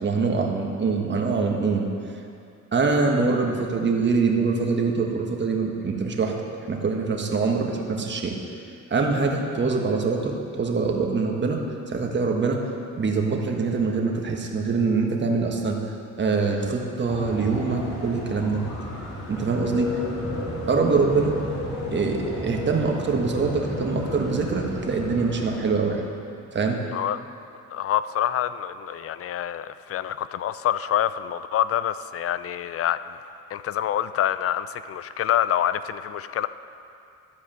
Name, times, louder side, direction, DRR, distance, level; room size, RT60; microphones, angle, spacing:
voice 1, 0.0-1.9 2.7-6.3 6.7-8.3 8.9-11.6 11.9-12.7 12.9-15.8 16.2-18.6 19.3-19.9 20.7-21.3 21.9-26.0 26.5-26.8, right 4 dB, 35° right, 1 dB, 1.4 m, -24 dB
sound 1, 17.1-26.1, left 1 dB, 65° left, 2.4 m, -33 dB
voice 2, 27.7-33.2 33.5-36.5, left 11 dB, 50° left, 14 dB, 0.4 m, -26 dB
12.0 x 4.9 x 7.4 m, 2.5 s
cardioid pair, 90°, 30 cm